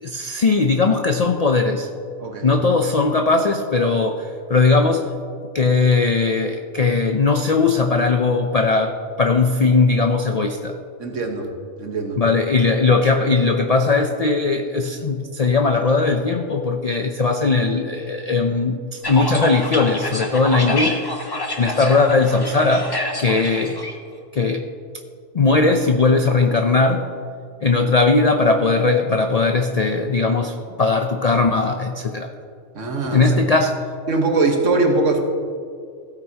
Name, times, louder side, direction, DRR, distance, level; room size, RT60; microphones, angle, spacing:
voice 1, 0.0-1.9 2.4-5.1 5.5-10.8 12.2-21.0 21.6-22.9 23.2-23.8 24.3-24.6 25.3-27.1 27.6-32.3 33.1-33.8, left 3 dB, 60° left, 5 dB, 0.4 m, -19 dB
voice 2, 11.0-11.5 11.8-12.2 32.7-33.3 34.1-35.2, right 3 dB, 70° right, 2 dB, 1.6 m, -21 dB
sound 1, 19.0-23.9, left 1 dB, 20° left, 1.0 m, -27 dB
16.0 x 9.0 x 2.8 m, 2.3 s
omnidirectional pair, 1.3 m